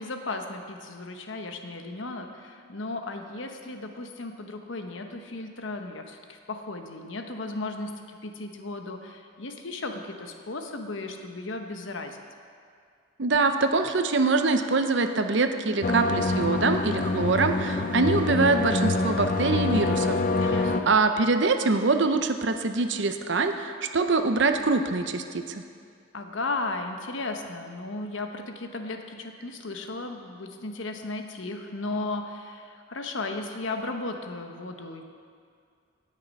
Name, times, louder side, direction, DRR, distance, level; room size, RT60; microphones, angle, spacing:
voice 1, 0.0-12.2 20.4-20.9 26.1-35.0, left 2 dB, 70° left, 5 dB, 1.0 m, -35 dB
voice 2, 13.2-25.6, right 3 dB, 60° right, 7 dB, 0.7 m, -24 dB
sound 1, 15.8-20.8, left 3 dB, 40° left, 0.6 m, -26 dB
17.5 x 6.6 x 5.3 m, 2.2 s
head